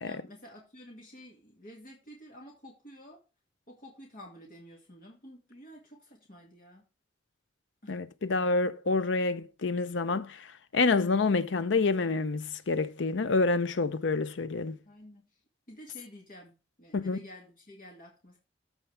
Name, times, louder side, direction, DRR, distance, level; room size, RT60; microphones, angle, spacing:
voice 1, 0.0-3.2 3.7-6.8 7.8-8.0 14.9-15.3 15.7-16.5 16.8-18.4, equal, 45° left, 2.1 m, -50 dB
voice 2, 7.9-14.8 16.9-17.2, left 3 dB, 75° left, 0.6 m, -28 dB
13.5 x 4.6 x 3.4 m
head